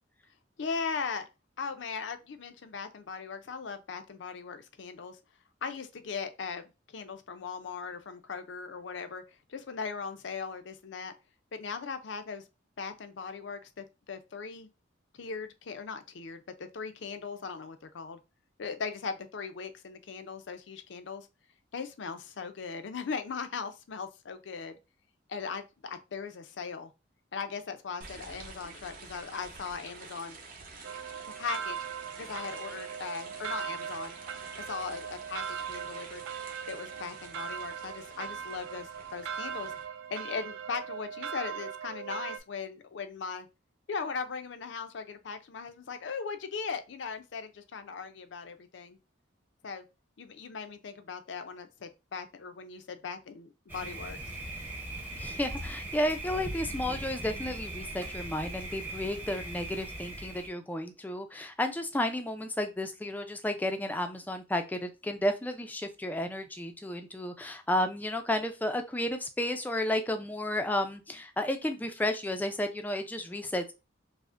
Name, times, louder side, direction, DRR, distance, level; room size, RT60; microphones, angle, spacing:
voice 1, 0.6-1.3 1.6-5.2 5.6-9.2 9.5-11.1 11.5-12.4 12.8-14.7 15.1-18.2 18.6-21.3 21.7-24.8 25.3-26.9 27.3-30.4 31.4-31.8 32.2-34.2 34.6-36.2 36.7-39.7 40.1-43.5 43.9-49.0 49.6-49.9 50.2-54.2, left 5 dB, 70° left, 0.5 m, -39 dB
sound 1, 28.0-39.8, right 4 dB, 45° right, 0.7 m, -48 dB
sound 2, 30.8-42.4, right 8 dB, 75° right, 0.3 m, -39 dB
Thunder, 53.7-60.5, right 1 dB, 10° right, 0.7 m, -39 dB
voice 2, 55.2-73.7, left 1 dB, 10° left, 0.3 m, -32 dB
4.9 x 2.1 x 2.5 m
head